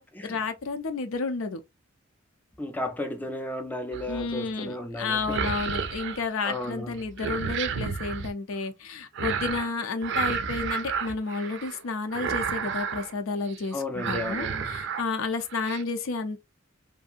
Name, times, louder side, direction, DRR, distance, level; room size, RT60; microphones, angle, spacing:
voice 1, 0.2-1.6 4.1-16.4, left 4 dB, 85° left, 0.5 m, -31 dB
voice 2, 2.6-5.4 6.4-7.0 13.7-14.8, left 1 dB, 10° left, 0.3 m, -34 dB
sound 1, 3.9-4.3 5.1-6.7 7.0-8.3 9.1-9.7 10.0-11.8 12.1-13.1 13.5-13.7 14.0-15.0 15.4-15.8, right 6 dB, 60° right, 0.4 m, -31 dB
2.6 x 2.5 x 2.4 m
head